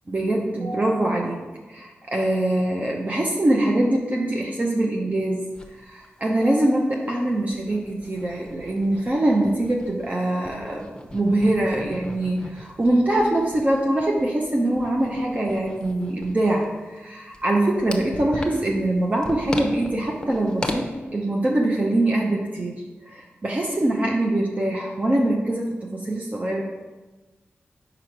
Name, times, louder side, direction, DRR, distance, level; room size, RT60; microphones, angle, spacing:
voice 1, 0.1-1.4 1.7-5.5 5.7-26.6, right 1 dB, 35° right, -1 dB, 0.7 m, -23 dB
sound 1, 5.5-5.7 6.0-6.1 6.4-6.5 7.1-10.1 10.4-20.8, left 1 dB, 20° left, 0.8 m, -37 dB
4.9 x 4.9 x 4.5 m, 1.2 s
cardioid pair, 45°, 4 cm